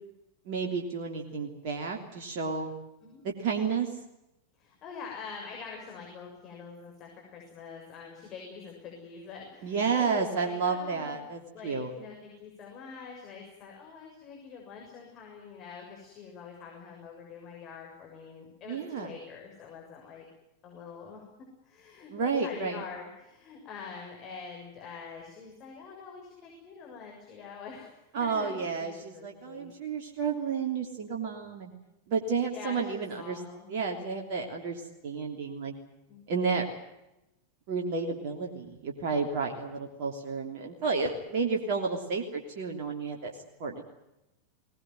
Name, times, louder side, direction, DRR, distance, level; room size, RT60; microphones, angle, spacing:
voice 1, 0.5-2.7 3.2-3.9 9.6-11.9 18.7-19.1 22.1-22.8 28.1-31.7 32.1-33.4 33.7-35.7 36.3-36.6 37.7-43.3 43.6-43.8, right 5 dB, 45° right, 1 dB, 3.2 m, -31 dB
voice 2, 4.6-11.2 11.5-20.2 20.6-29.7 30.4-30.5 32.4-33.7 36.1-36.2 38.3-38.7, left 5 dB, 35° left, 0 dB, 6.9 m, -45 dB
21.5 x 20.0 x 9.4 m, 0.92 s
figure-of-eight pair, 90°, 0 cm